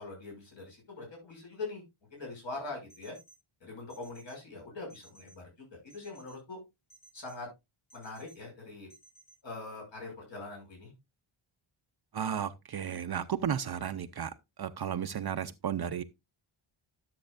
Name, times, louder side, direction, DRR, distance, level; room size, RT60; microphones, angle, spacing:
voice 1, 0.0-1.8 2.1-3.1 3.6-6.6 7.1-7.5 7.9-8.9 9.4-10.9, left 3 dB, 60° left, 6.4 m, -43 dB
sound 1, 2.9-3.4 3.9-4.4 4.9-5.4 5.9-6.4 6.9-7.4 7.9-8.4 8.9-9.4, right 2 dB, 45° left, 5.8 m, -57 dB
voice 2, 12.1-14.3 14.6-16.0, right 8 dB, 50° right, 0.6 m, -33 dB
12.5 x 7.7 x 2.4 m
wide cardioid pair, 130°, 50 cm